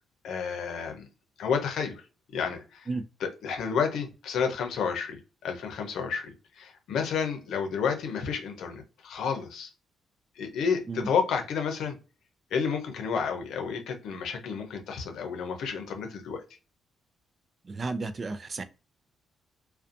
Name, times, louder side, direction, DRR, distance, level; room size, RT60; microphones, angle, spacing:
voice 1, 0.2-1.1 1.4-2.0 2.3-2.9 3.2-9.7 10.4-12.0 12.5-16.4, left 6 dB, 75° left, 0.7 m, -31 dB
voice 2, 17.6-18.6, right 3 dB, 35° right, 0.3 m, -33 dB
2.6 x 2.2 x 2.5 m
cardioid pair, 90°, 0 cm